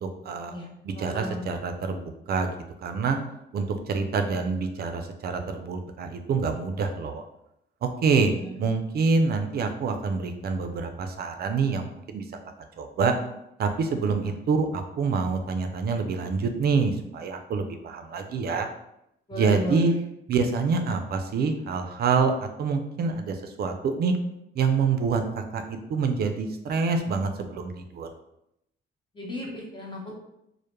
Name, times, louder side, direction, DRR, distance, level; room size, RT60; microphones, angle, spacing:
voice 1, 0.0-0.5 0.8-2.0 2.3-2.5 2.8-3.2 3.5-7.2 8.0-8.3 8.6-12.2 12.8-13.2 13.6-18.7 19.3-19.9 20.3-24.1 24.5-28.1, right 4 dB, 55° right, 6 dB, 0.4 m, -26 dB
voice 2, 0.9-1.4 8.3-8.6 19.3-20.0 29.1-30.2, equal, 25° left, -2 dB, 0.8 m, -33 dB
2.1 x 2.1 x 3.1 m, 0.80 s
cardioid pair, 90°, 20 cm